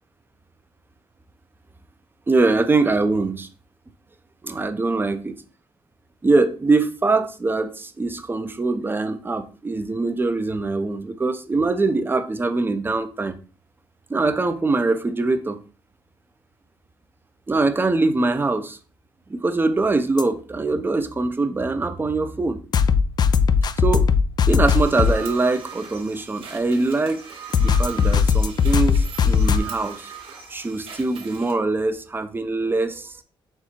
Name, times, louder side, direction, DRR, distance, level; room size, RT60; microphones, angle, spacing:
voice 1, 2.3-3.5 4.4-5.3 6.2-13.4 14.1-15.6 17.5-18.8 19.3-22.6 23.8-24.1 24.5-27.3 27.6-30.1 30.5-33.2, right 3 dB, 20° right, 0.6 m, -23 dB
sound 1, 20.2-20.3 22.7-25.1 27.5-29.6, left 6 dB, 50° left, 0.4 m, -18 dB
sound 2, 24.6-31.5, right 7 dB, 75° right, 1.4 m, -39 dB
4.4 x 2.3 x 4.3 m
cardioid pair, 80°, 9 cm